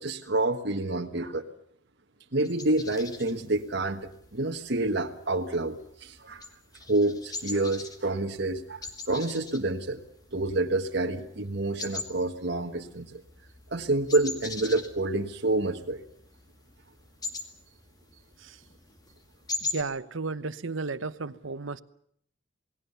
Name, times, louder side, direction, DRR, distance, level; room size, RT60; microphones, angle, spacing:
voice 1, 0.0-1.4 2.3-6.5 6.9-10.0 10.3-13.2 13.7-16.0, right 2 dB, 60° right, 1.5 m, -28 dB
sound 1, 2.4-19.8, left 3 dB, 20° left, 2.2 m, -42 dB
voice 2, 19.6-21.8, right 3 dB, 85° right, 1.0 m, -33 dB
28.5 x 19.5 x 7.0 m
head